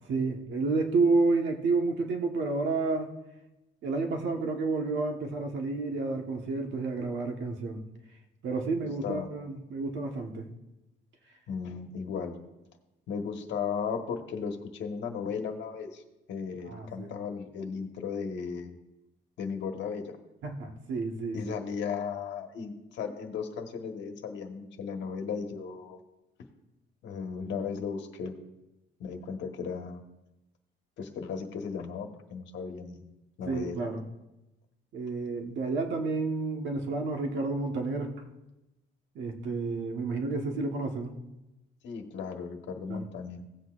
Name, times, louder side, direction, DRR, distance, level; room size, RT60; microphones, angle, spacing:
voice 1, 0.1-3.1 3.8-7.8 8.4-10.5 16.6-17.1 20.4-21.5 33.5-34.0 34.9-38.2 39.1-41.2 42.9-43.1, right 3 dB, 65° right, 3 dB, 1.2 m, -30 dB
voice 2, 8.7-9.3 11.5-12.4 13.1-16.0 16.3-18.7 19.4-20.1 21.3-26.0 27.0-28.3 29.0-30.0 31.0-33.0 33.4-33.8 41.8-43.4, left 6 dB, 65° left, 4 dB, 1.3 m, -36 dB
17.0 x 8.1 x 2.5 m, 0.97 s
cardioid pair, 165°, 20 cm